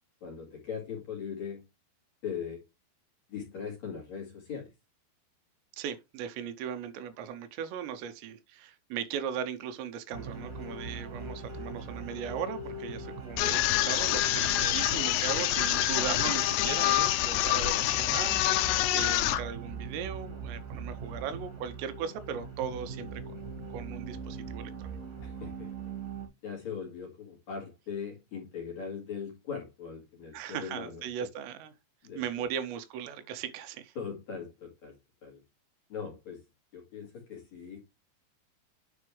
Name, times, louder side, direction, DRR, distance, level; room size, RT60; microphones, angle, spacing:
voice 1, 0.2-1.6 2.2-2.6 3.3-4.7 25.2-25.7 26.4-31.3 32.0-32.5 34.0-35.0 35.2-35.4 35.9-36.4 36.7-37.8, left 6 dB, 45° left, 2.9 m, -40 dB
voice 2, 5.8-23.4 23.7-24.9 30.3-31.7 32.2-34.0, right 8 dB, 80° right, 2.9 m, -38 dB
sound 1, 10.1-26.3, right 3 dB, 35° right, 1.9 m, -41 dB
sound 2, 13.4-19.4, left 14 dB, 80° left, 2.6 m, -26 dB
9.6 x 4.2 x 3.2 m
omnidirectional pair, 5.1 m